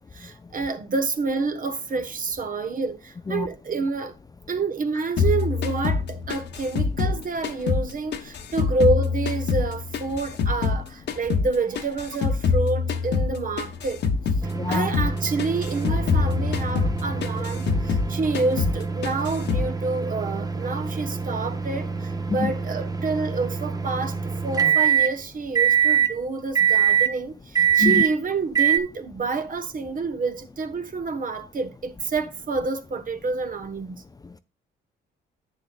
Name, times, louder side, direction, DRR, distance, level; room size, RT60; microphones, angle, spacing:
voice 1, 0.0-4.2 4.5-14.0 14.4-34.0, right 3 dB, 45° right, 1.3 m, -28 dB
sound 1, 5.2-7.9 8.1-10.8 11.1-14.5 14.7-15.1 15.4-18.1 18.3-18.8 19.0-19.7, left 5 dB, 60° left, 1.3 m, -24 dB
sound 2, 14.4-25.1 25.5-26.1 26.5-27.1 27.5-28.1 28.5-28.8, right 7 dB, 20° right, 1.0 m, -24 dB
voice 2, 14.6-14.9 22.3-22.5 27.8-28.0, left 4 dB, 20° left, 0.5 m, -24 dB
10.5 x 8.5 x 2.4 m
cardioid pair, 90°, 20 cm